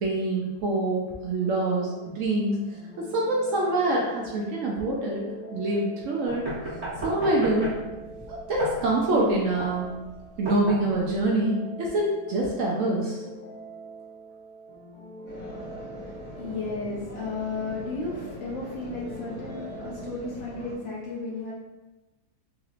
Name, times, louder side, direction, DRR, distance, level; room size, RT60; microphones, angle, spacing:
voice 1, 0.0-2.6 3.0-6.5 7.0-7.8 8.3-9.9 10.4-13.2, right 2 dB, 70° right, -2 dB, 0.8 m, -25 dB
sound 1, 1.4-20.1, right 1 dB, 90° left, 1.4 m, -44 dB
sound 2, 6.3-11.3, right 1 dB, 25° right, 1.0 m, -35 dB
sound 3, 15.3-20.7, equal, 5° left, 1.0 m, -41 dB
voice 2, 16.0-21.5, left 3 dB, 65° left, -5 dB, 0.7 m, -34 dB
3.9 x 3.0 x 2.4 m, 1.1 s
omnidirectional pair, 1.7 m